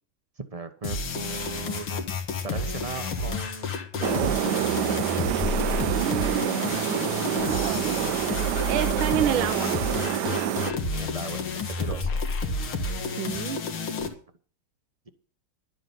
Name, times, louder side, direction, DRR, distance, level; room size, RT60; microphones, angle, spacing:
voice 1, 0.5-4.5 7.9-8.4 10.9-12.2, right 3 dB, 30° right, 9 dB, 0.6 m, -38 dB
sound 1, 0.8-14.1, left 3 dB, 85° left, 2.6 m, -30 dB
sound 2, 4.0-10.7, right 11 dB, 65° right, 1.2 m, -27 dB
voice 2, 5.9-7.2 7.5-8.1 8.7-9.8 13.2-13.6, right 9 dB, 80° right, 11 dB, 1.6 m, -29 dB
11.5 x 8.5 x 7.0 m, 0.41 s
omnidirectional pair, 2.2 m